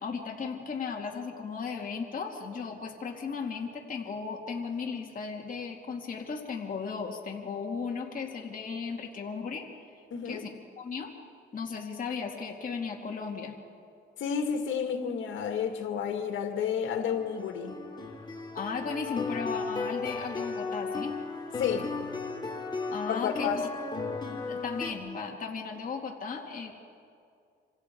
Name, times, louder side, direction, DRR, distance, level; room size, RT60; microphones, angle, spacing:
voice 1, 0.0-9.7 10.2-10.5 10.8-11.1 11.5-13.6 18.5-21.1 22.9-23.7 24.5-26.7, left 5 dB, 45° left, 2.5 m, -36 dB
voice 2, 10.1-10.4 14.2-17.8 21.6-21.9 23.1-23.7, left 7 dB, 75° left, 2.3 m, -31 dB
sound 1, 17.0-24.9, left 4 dB, 20° left, 3.3 m, -35 dB
27.0 x 26.0 x 4.7 m
cardioid pair, 90°, 20 cm